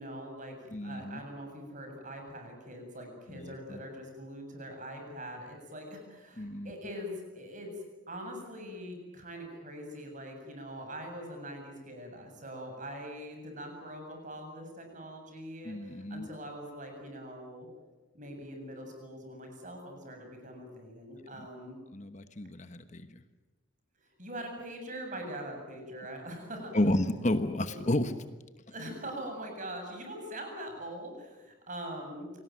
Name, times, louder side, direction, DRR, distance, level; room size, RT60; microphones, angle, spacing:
voice 1, 0.0-0.6 0.8-17.7 18.1-21.8 24.0-26.7 28.7-32.3, equal, 40° right, 3 dB, 7.6 m, -43 dB
voice 2, 0.7-1.2 3.3-3.8 6.4-6.7 15.6-16.3 21.9-23.2 26.7-28.1, left 1 dB, 35° left, 10 dB, 1.1 m, -31 dB
28.0 x 19.5 x 9.4 m, 1.2 s
head